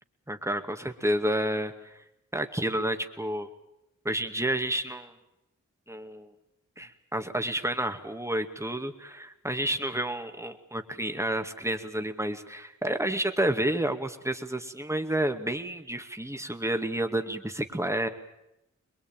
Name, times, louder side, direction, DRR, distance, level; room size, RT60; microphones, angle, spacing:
voice 1, 0.3-2.0 2.3-3.5 4.0-5.1 5.9-6.3 6.8-18.1, right 1 dB, 10° right, 6 dB, 2.2 m, -30 dB
23.5 x 22.0 x 9.0 m, 0.87 s
cardioid pair, 50°, 31 cm